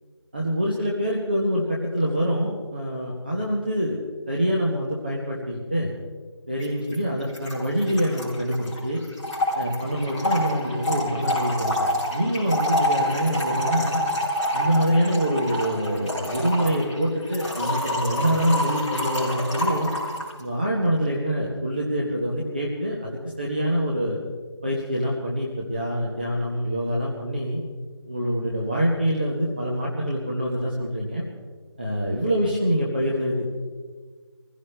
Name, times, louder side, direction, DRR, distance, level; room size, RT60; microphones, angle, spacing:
voice 1, 0.3-4.0 4.3-5.9 6.5-9.0 9.5-11.7 12.1-14.0 14.5-19.9 20.4-24.2 24.6-27.6 28.1-31.2 31.8-33.5, equal, 20° right, -4 dB, 1.1 m, -25 dB
Trickle dribble / Fill (with liquid), 6.6-6.7 6.9-7.0 7.2-20.3, left 1 dB, 15° left, 4.2 m, -27 dB
25.0 x 16.0 x 3.3 m, 1.5 s
figure-of-eight pair, 175°, 15 cm